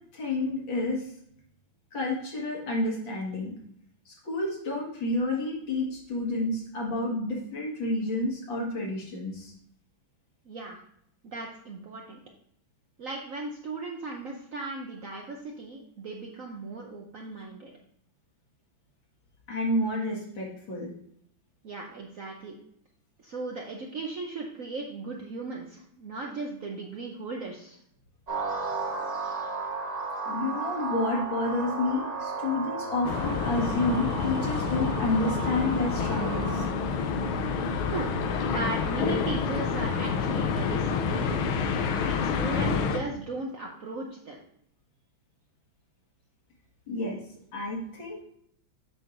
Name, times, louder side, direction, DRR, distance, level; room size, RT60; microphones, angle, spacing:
voice 1, 0.1-1.0 1.9-3.5 4.3-9.5 19.5-20.9 30.3-36.6 46.9-47.2 47.5-48.2, left 2 dB, 70° left, -2 dB, 2.5 m, -29 dB
voice 2, 10.5-10.8 11.2-12.2 13.0-17.7 21.6-22.6 23.2-27.8 37.9-38.1 38.4-41.4 42.1-44.4, right 3 dB, 60° right, 0 dB, 0.8 m, -37 dB
sound 1, 28.3-36.7, right 4 dB, 35° right, 1.9 m, -34 dB
sound 2, 33.0-43.0, left 5 dB, 85° left, 1.5 m, -28 dB
7.6 x 6.3 x 2.6 m, 0.70 s
omnidirectional pair, 2.2 m